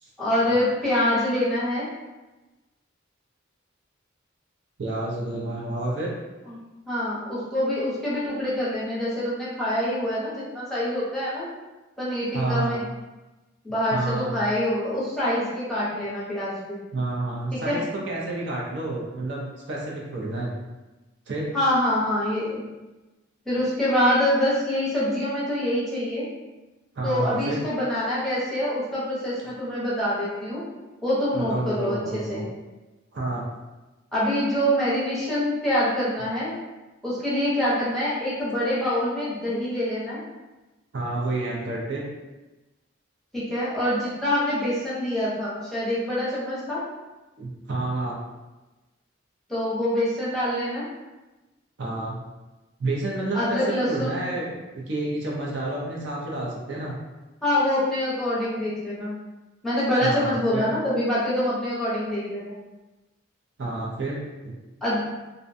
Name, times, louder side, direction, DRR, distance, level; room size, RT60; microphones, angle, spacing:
voice 1, 0.2-1.9 6.5-11.5 12.0-12.8 13.6-16.8 17.5-17.8 21.5-22.6 23.5-26.3 27.0-30.6 31.0-32.4 34.1-36.5 37.0-40.2 43.3-46.8 49.5-50.8 53.3-54.2 57.4-59.1 59.6-62.6 64.8-65.1, left 1 dB, ahead, -10 dB, 0.7 m, -25 dB
voice 2, 4.8-6.1 12.3-12.8 13.9-14.3 16.9-20.5 21.3-21.5 27.0-27.6 31.3-32.4 33.1-33.4 40.9-42.0 47.4-48.2 51.8-52.2 52.8-56.9 60.0-60.7 63.6-64.2 64.4-64.5, right 2 dB, 60° right, -3 dB, 0.5 m, -29 dB
2.5 x 2.1 x 2.5 m, 1.1 s
head